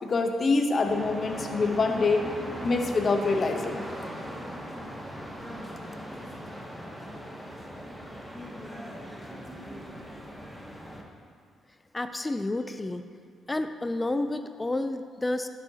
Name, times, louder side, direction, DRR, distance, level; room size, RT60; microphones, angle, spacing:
voice 1, 0.0-2.2 2.6-3.9, left 3 dB, 40° left, 4 dB, 0.8 m, -25 dB
sound 1, 0.8-11.0, equal, ahead, 0.9 m, -39 dB
voice 2, 11.9-13.1 13.5-15.5, left 2 dB, 20° left, 9 dB, 0.4 m, -30 dB
12.0 x 6.3 x 2.8 m, 2.1 s
cardioid pair, 90°, 0 cm